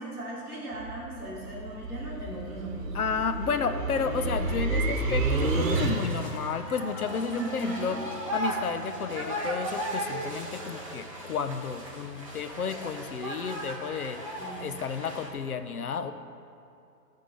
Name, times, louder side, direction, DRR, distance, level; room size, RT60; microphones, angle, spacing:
voice 1, 0.0-2.9 7.3-8.1 14.4-14.6, right 2 dB, ahead, -20 dB, 1.7 m, -37 dB
sound 1, 0.7-6.4, right 2 dB, 55° right, 1.2 m, -30 dB
voice 2, 2.9-8.0 8.3-14.2 14.6-16.1, left 6 dB, 65° left, 9 dB, 0.7 m, -32 dB
sound 2, 5.4-15.3, right 1 dB, 20° right, 0.7 m, -37 dB
11.0 x 3.7 x 6.8 m, 2.6 s
hypercardioid pair, 170°, 48 cm